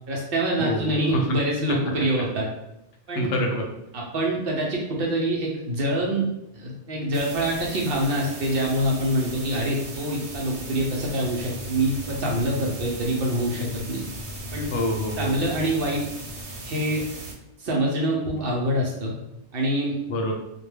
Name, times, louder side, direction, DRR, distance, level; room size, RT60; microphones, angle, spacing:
voice 1, 0.1-2.5 3.1-3.3 3.9-6.2 6.5-14.0 14.5-14.7 15.2-16.0 16.6-17.0 17.6-19.1 19.5-20.0, right 1 dB, 60° right, -2 dB, 0.7 m, -25 dB
voice 2, 0.6-1.4 3.1-3.6 14.7-15.3 20.1-20.3, left 1 dB, 80° left, 1 dB, 0.9 m, -26 dB
sound 1, 7.1-17.3, right 1 dB, 80° right, 0.9 m, -37 dB
2.2 x 2.1 x 3.2 m, 0.87 s
omnidirectional pair, 1.2 m